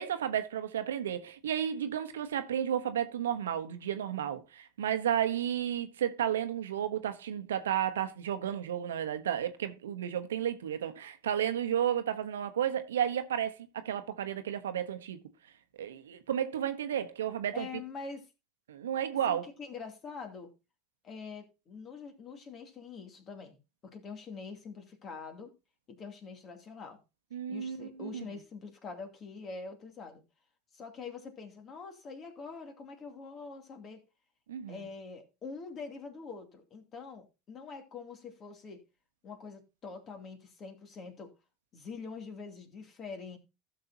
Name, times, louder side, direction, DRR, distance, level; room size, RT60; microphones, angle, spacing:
voice 1, 0.0-15.2 15.8-17.7 18.7-19.5 27.3-28.2 34.5-34.8, right 9 dB, 80° right, 0.9 m, -32 dB
voice 2, 17.5-18.3 19.3-20.5 21.0-23.6 23.9-25.5 25.9-27.0 27.5-30.2 30.7-34.0 34.7-38.8 39.2-41.3 41.7-43.4, left 4 dB, 40° left, 2.6 m, -44 dB
15.5 x 6.7 x 2.8 m
hypercardioid pair, 80°, 0 cm